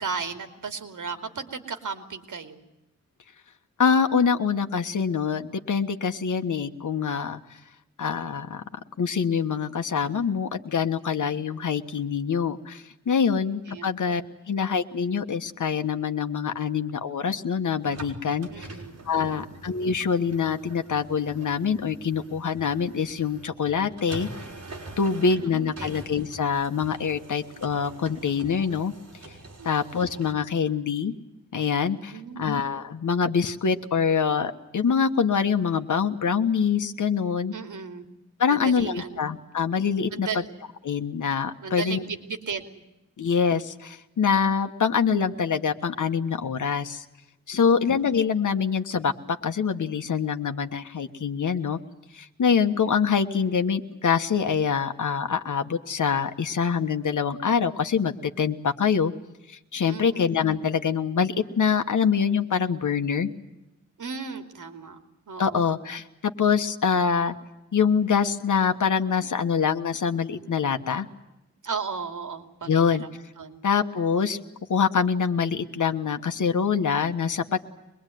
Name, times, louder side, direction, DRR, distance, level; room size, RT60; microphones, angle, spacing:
voice 1, 0.0-2.6 11.2-11.3 13.7-14.0 18.5-19.5 25.0-25.9 29.6-29.8 32.0-32.5 37.5-38.1 38.4-39.2 40.1-40.5 41.6-42.8 47.5-48.0 59.8-60.3 64.0-65.0 65.3-65.6 71.6-73.1 73.4-73.6, right 5 dB, 80° right, 7 dB, 2.9 m, -36 dB
voice 2, 3.8-7.4 8.0-8.6 9.0-14.2 14.5-18.7 19.1-24.3 25.0-28.9 29.6-31.1 31.5-32.1 32.4-37.5 38.4-40.3 40.8-42.0 43.2-47.0 47.5-51.8 52.1-59.1 59.5-63.3 65.4-67.3 67.7-71.1 72.7-73.0 73.6-74.4 74.7-77.6, left 6 dB, 80° left, 6 dB, 1.4 m, -25 dB
sound 1, 17.8-30.3, right 2 dB, 55° right, 5.8 m, -44 dB
24.0 x 21.5 x 9.3 m, 0.91 s
wide cardioid pair, 150°, 30 cm